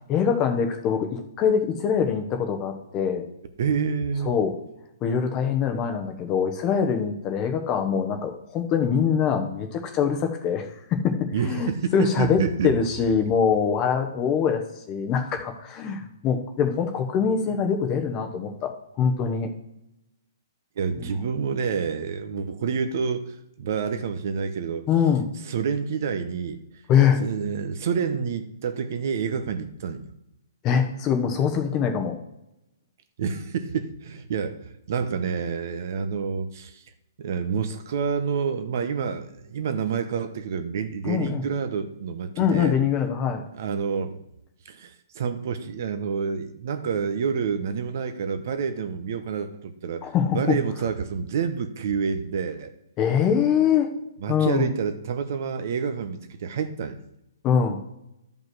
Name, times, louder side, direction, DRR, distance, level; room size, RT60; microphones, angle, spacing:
voice 1, 0.1-3.2 4.2-4.5 5.0-18.7 19.0-19.5 21.0-21.2 24.9-25.3 26.9-27.3 30.6-32.2 41.0-41.5 42.4-43.4 50.0-50.6 53.0-53.9 54.3-54.7 57.4-57.8, left 7 dB, 20° left, 6 dB, 1.1 m, -23 dB
voice 2, 3.6-4.3 11.3-12.7 20.8-24.9 25.5-26.6 27.2-30.1 33.2-36.8 37.2-42.7 43.5-44.2 44.6-50.0 50.3-52.7 54.2-57.0, right 6 dB, 50° right, 9 dB, 1.1 m, -28 dB
11.5 x 5.5 x 6.2 m, 0.85 s
hypercardioid pair, 160°, 2 cm